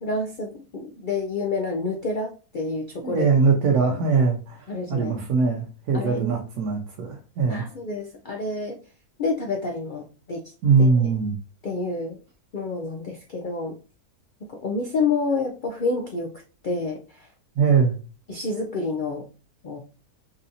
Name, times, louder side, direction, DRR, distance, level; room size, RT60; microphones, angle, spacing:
voice 1, 0.0-3.3 4.7-5.2 5.9-6.3 7.5-8.8 9.2-10.5 10.8-10.9 11.6-12.1 12.5-13.8 14.5-17.3 18.3-19.3 19.6-19.8, left 3 dB, 75° left, 2 dB, 0.4 m, -28 dB
voice 2, 3.0-7.6 10.6-11.3 17.6-18.0, right 5 dB, 80° right, -1 dB, 1.2 m, -21 dB
4.0 x 2.6 x 2.7 m, 0.35 s
omnidirectional pair, 1.6 m